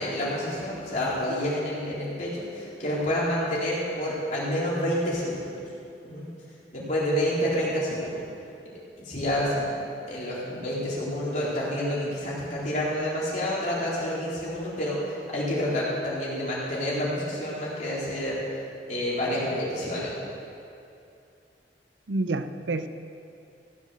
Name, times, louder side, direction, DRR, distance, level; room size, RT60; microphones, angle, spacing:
voice 1, 0.0-5.5 6.0-6.3 6.7-8.2 9.0-9.7 10.1-18.4 18.9-20.1, equal, 45° left, -7 dB, 3.8 m, -28 dB
voice 2, 22.1-22.9, right 2 dB, 90° right, 10 dB, 0.6 m, -28 dB
16.0 x 7.3 x 6.9 m, 2.6 s
head